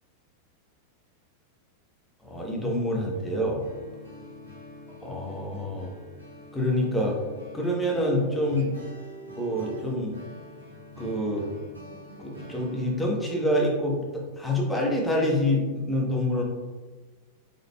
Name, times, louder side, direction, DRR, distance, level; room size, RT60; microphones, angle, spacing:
voice 1, 2.2-3.6 5.0-5.9 6.5-7.2 7.5-8.7 9.3-10.2 11.0-11.5 12.2-16.4, left 1 dB, 10° left, -2 dB, 1.0 m, -26 dB
sound 1, 3.1-15.3, equal, 85° right, 1.0 m, -46 dB
5.0 x 3.8 x 2.2 m, 1.3 s
figure-of-eight pair, 90°, 0 cm